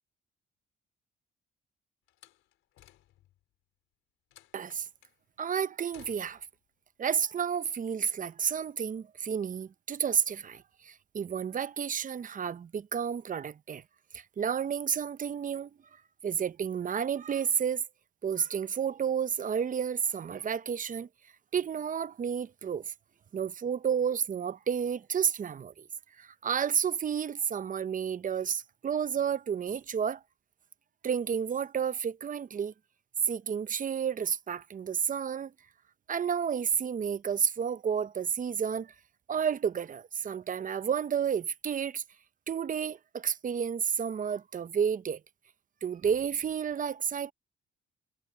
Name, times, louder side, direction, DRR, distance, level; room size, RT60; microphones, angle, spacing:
Slam, 2.1-3.4 4.3-5.2 5.9-6.6, left 13 dB, 85° left, 4.1 m, -58 dB
voice 1, 4.5-4.9 5.4-6.4 7.0-13.8 14.1-15.7 16.2-17.8 18.2-21.1 21.5-22.8 23.3-25.8 26.2-30.2 31.0-32.7 33.3-35.5 36.1-38.9 39.3-42.0 42.5-45.2 45.8-47.3, right 7 dB, 40° right, 0.8 m, -31 dB
cardioid pair, 90°, 20 cm